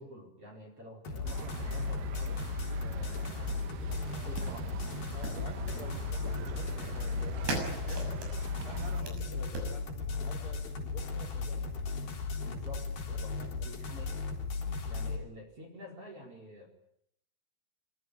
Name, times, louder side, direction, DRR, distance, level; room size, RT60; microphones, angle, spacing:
voice 1, 0.0-2.4 2.8-4.7 5.7-5.9 6.2-6.3 9.0-9.2 12.4-13.4 13.6-14.1 14.8-16.7, equal, 30° right, 4 dB, 4.8 m, -49 dB
sound 1, 1.0-15.2, left 4 dB, 50° left, 5.2 m, -36 dB
sound 2, 1.2-9.0, right 8 dB, 75° right, 3.8 m, -43 dB
sound 3, 4.4-9.7, right 2 dB, 55° right, 8.2 m, -41 dB
voice 2, 5.1-8.2 8.6-11.6 13.1-13.7, left 1 dB, 30° left, 4 dB, 4.5 m, -49 dB
24.5 x 22.5 x 9.7 m, 0.74 s
omnidirectional pair, 5.8 m